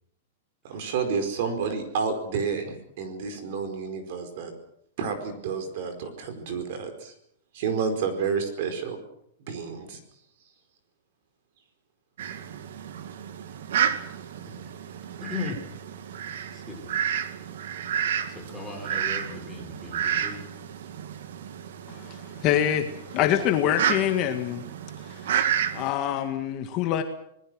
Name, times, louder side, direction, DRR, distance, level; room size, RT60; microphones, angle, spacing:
voice 1, 0.6-4.5 5.0-7.1 7.5-9.0 9.5-10.0, right 5 dB, 45° right, 7 dB, 4.7 m, -30 dB
Fowl, 12.2-25.9, right 9 dB, 65° right, 2.0 m, -31 dB
voice 2, 15.2-15.6 16.5-16.9 18.3-20.4, left 4 dB, ahead, -1 dB, 4.6 m, -37 dB
voice 3, 22.4-22.8 23.1-24.6 25.8-27.0, left 11 dB, 30° left, 5 dB, 1.7 m, -24 dB
27.0 x 20.0 x 6.4 m, 0.72 s
supercardioid pair, 175°, 0 cm